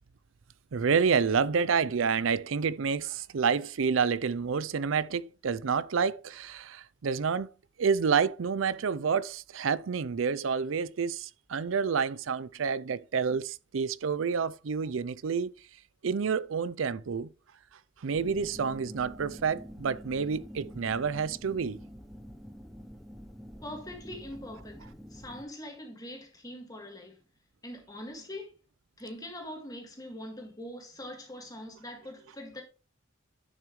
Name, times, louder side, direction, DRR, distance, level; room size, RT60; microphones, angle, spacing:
voice 1, 0.7-7.5 7.8-15.5 16.0-17.3 18.0-21.8, right 6 dB, 90° right, 0.5 m, -29 dB
sound 1, 18.1-25.5, equal, ahead, 0.8 m, -47 dB
voice 2, 23.6-27.2 27.6-28.5 29.0-32.6, left 1 dB, 20° left, 2.0 m, -43 dB
10.5 x 6.2 x 3.1 m
head